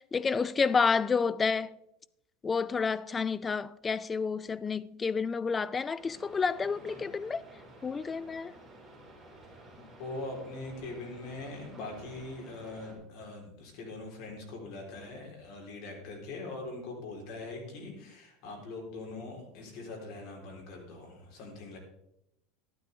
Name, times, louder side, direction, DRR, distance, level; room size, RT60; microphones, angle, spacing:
voice 1, 0.1-1.7 2.4-7.4 7.8-8.5, left 5 dB, 15° left, 0.4 m, -29 dB
sound 1, 6.0-12.9, right 1 dB, 5° right, 4.6 m, -52 dB
voice 2, 9.7-21.8, left 2 dB, 60° left, 3.8 m, -42 dB
12.5 x 12.0 x 3.5 m
supercardioid pair, 145°, 0 cm